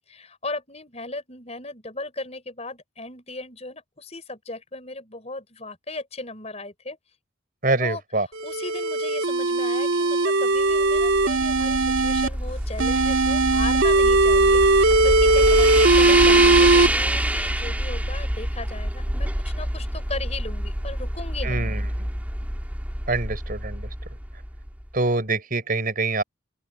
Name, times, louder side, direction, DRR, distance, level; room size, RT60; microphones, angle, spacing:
voice 1, 0.0-7.0 7.8-8.0 8.4-21.8, left 2 dB, 30° left, 6.1 m, -37 dB
voice 2, 7.6-8.3 21.4-22.1 23.1-23.9 24.9-26.2, right 2 dB, 45° right, 5.8 m, -25 dB
sound 1, 8.4-12.3 12.8-16.9, right 2 dB, 75° right, 2.6 m, -19 dB
sound 2, 10.7-24.9, right 1 dB, 10° right, 2.7 m, -26 dB
open air
head